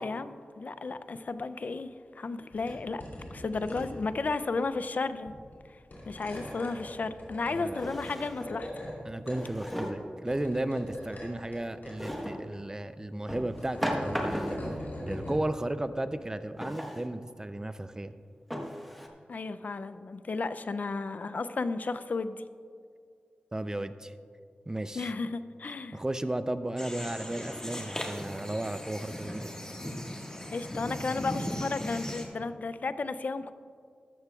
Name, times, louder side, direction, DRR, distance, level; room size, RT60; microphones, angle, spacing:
voice 1, 0.0-3.0 3.3-5.3 6.1-8.7 19.3-22.4 25.0-26.0 30.5-33.5, left 3 dB, 60° left, 12 dB, 0.4 m, -33 dB
sound 1, 2.5-2.7 3.0-4.4 5.3-5.5 5.9-8.9 9.3-9.9 10.3-11.6 11.8-12.2 13.2-15.4, left 1 dB, 85° left, 2.9 m, -41 dB
Drawer open or close, 6.4-6.5 7.7-8.6 9.3-10.1 12.0-12.5 13.3-14.7 16.6-17.1 17.7-17.8 18.5-19.1, equal, ahead, 1.1 m, -35 dB
voice 2, 7.5-7.8 9.0-18.1 23.5-24.1 24.7-25.1 25.9-29.5, right 1 dB, 20° right, 11 dB, 0.4 m, -34 dB
sound 2, 26.8-32.2, equal, 20° left, 1.6 m, -38 dB
13.5 x 12.5 x 2.3 m, 2.2 s
wide cardioid pair, 90°, 3 cm